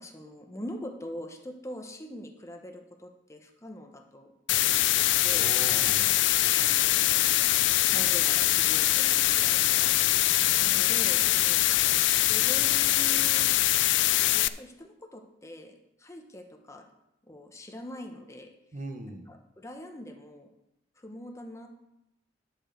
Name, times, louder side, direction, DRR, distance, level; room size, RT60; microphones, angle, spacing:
voice 1, 0.0-4.3 4.6-5.5 6.5-7.3 7.9-11.7 12.2-13.6 14.3-16.8 17.2-18.5 19.1-20.5 21.0-21.7, left 1 dB, 15° left, 3 dB, 0.9 m, -43 dB
sound 1, 4.5-14.5, left 16 dB, 80° left, 0.4 m, -23 dB
voice 2, 5.4-6.2 10.3-10.8 18.7-19.3, right 1 dB, 45° right, 5 dB, 1.1 m, -40 dB
10.5 x 4.7 x 6.6 m, 0.86 s
head